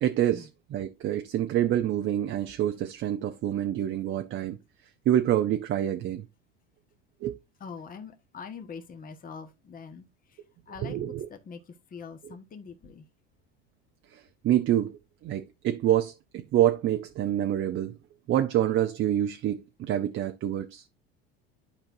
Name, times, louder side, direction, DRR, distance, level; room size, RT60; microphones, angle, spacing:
voice 1, 0.0-4.6 5.1-6.2 7.2-7.4 10.8-11.3 14.1-18.0 18.3-20.9, right 12 dB, 45° right, 0.7 m, -27 dB
voice 2, 7.6-10.4 10.7-11.6 11.9-13.0, left 6 dB, 30° left, 1.3 m, -43 dB
11.5 x 4.5 x 2.6 m
supercardioid pair, 100°, 29 cm